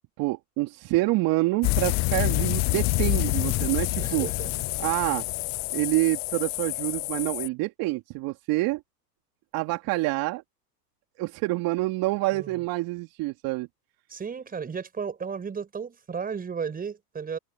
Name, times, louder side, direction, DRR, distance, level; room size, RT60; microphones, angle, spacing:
voice 1, 0.2-4.3 4.8-5.2 5.7-8.8 9.5-10.4 11.2-13.7, right 21 dB, 45° right, 3.3 m, -27 dB
sound 1, 1.6-7.5, left 24 dB, 35° left, 0.8 m, -27 dB
voice 2, 4.0-4.5 12.3-12.6 14.1-17.4, right 6 dB, 15° right, 5.8 m, -34 dB
hypercardioid pair, 115°, 49 cm